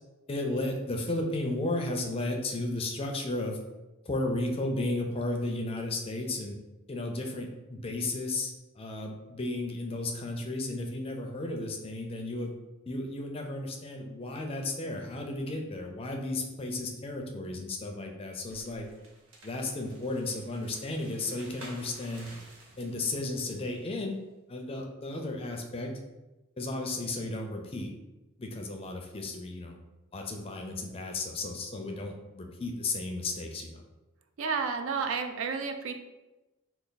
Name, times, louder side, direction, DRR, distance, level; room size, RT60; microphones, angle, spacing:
voice 1, 0.3-3.6 4.1-6.6 6.9-12.5 12.9-18.9 19.4-22.3 22.8-24.2 24.5-25.9 26.6-27.9 28.4-29.8 30.1-33.8, left 2 dB, 25° left, 2 dB, 0.4 m, -34 dB
sound 1, 18.5-24.0, right 2 dB, 85° right, 0.8 m, -53 dB
voice 2, 34.4-35.9, right 5 dB, 65° right, 7 dB, 0.4 m, -31 dB
3.3 x 2.3 x 3.9 m, 1.1 s
head